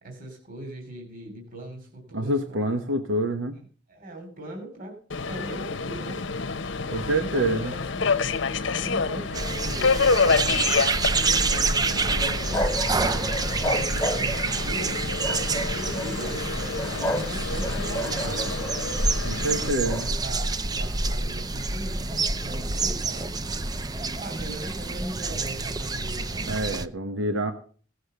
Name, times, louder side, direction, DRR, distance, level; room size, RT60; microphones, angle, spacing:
voice 1, 0.0-3.0 3.9-5.0 5.3-6.2 7.0-8.0 8.8-12.8 13.5-15.0 15.5-16.4 16.9-18.5 19.4-23.4 24.2-26.5, right 1 dB, 45° right, 3 dB, 3.0 m, -39 dB
voice 2, 2.1-3.5 6.9-7.7 19.2-20.1 26.4-27.5, right 1 dB, 85° right, 7 dB, 1.1 m, -27 dB
Subway metro underground, 5.1-19.7, left 4 dB, 65° left, 0.8 m, -28 dB
sound 1, 9.3-26.9, right 3 dB, 20° right, 0.5 m, -28 dB
sound 2, 12.2-14.6 15.2-16.1 16.8-17.3 17.6-19.0 19.8-20.1, equal, 10° left, 1.4 m, -31 dB
16.5 x 6.5 x 6.7 m, 0.43 s
head